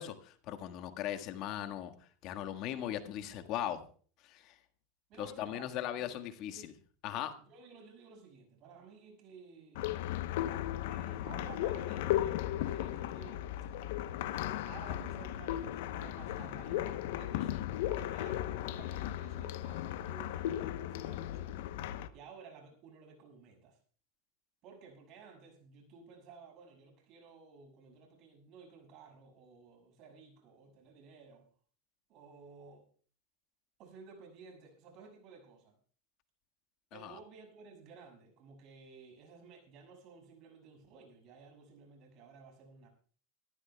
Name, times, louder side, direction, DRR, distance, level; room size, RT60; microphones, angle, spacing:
voice 1, 0.0-1.9 2.2-3.8 4.2-4.5 5.2-6.7 7.0-7.3 36.9-37.2, left 11 dB, 55° left, 1.6 m, -39 dB
voice 2, 5.1-6.7 7.4-9.9 10.9-13.5 14.6-17.5 17.9-21.4 22.1-23.8 24.6-31.4 32.1-32.9 33.8-35.7 36.9-42.9, right 5 dB, 55° right, 6.4 m, -55 dB
sound 1, 9.8-22.1, left 13 dB, 70° left, 0.8 m, -36 dB
24.5 x 14.0 x 2.3 m
hypercardioid pair, 105°, 0 cm